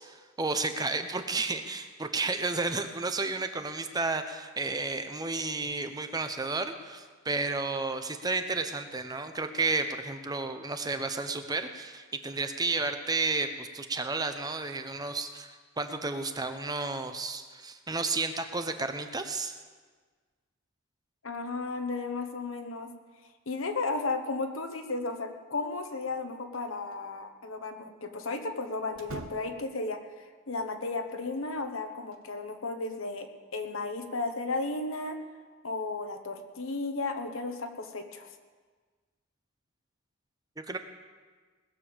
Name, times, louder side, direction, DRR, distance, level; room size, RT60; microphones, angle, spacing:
voice 1, 0.0-19.6 40.6-40.8, right 3 dB, 20° right, 8 dB, 0.7 m, -32 dB
voice 2, 21.2-22.9 23.5-30.0 30.5-33.3 33.5-35.2 35.6-38.3, left 3 dB, 85° left, 6 dB, 1.2 m, -34 dB
sound 1, 26.0-26.7 26.9-27.0 28.9-29.8 31.4-32.3, right 2 dB, 85° right, 1.0 m, -46 dB
19.5 x 7.0 x 7.1 m, 1.5 s
head